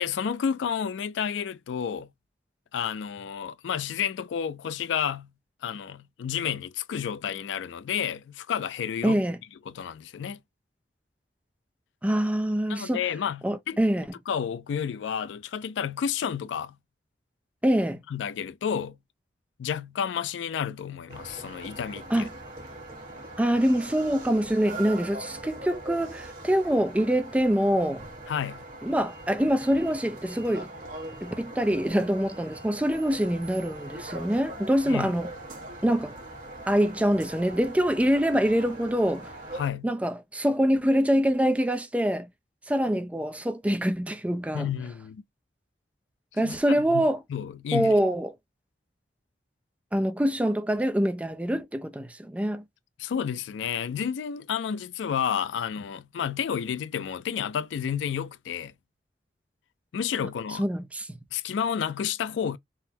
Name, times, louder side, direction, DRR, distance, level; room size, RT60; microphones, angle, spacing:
voice 1, 0.0-2.1 2.7-5.3 5.6-9.2 9.7-10.4 12.7-13.8 14.3-16.8 18.1-19.0 19.6-22.3 28.3-28.6 34.9-35.1 39.5-39.9 44.5-45.2 46.4-48.0 53.0-58.7 59.9-60.7 61.3-62.6, left 8 dB, 90° left, 0.3 m, -31 dB
voice 2, 9.0-9.4 12.0-13.0 13.4-14.1 17.6-18.0 22.1-22.3 23.4-28.0 28.8-30.7 31.2-35.3 35.8-36.1 36.7-39.3 39.8-42.3 42.7-44.7 46.4-47.2 47.7-48.3 49.9-52.6 60.6-61.2, equal, 10° right, 0.3 m, -25 dB
sound 1, 21.1-39.7, right 1 dB, 50° right, 1.3 m, -41 dB
3.7 x 2.0 x 2.7 m
head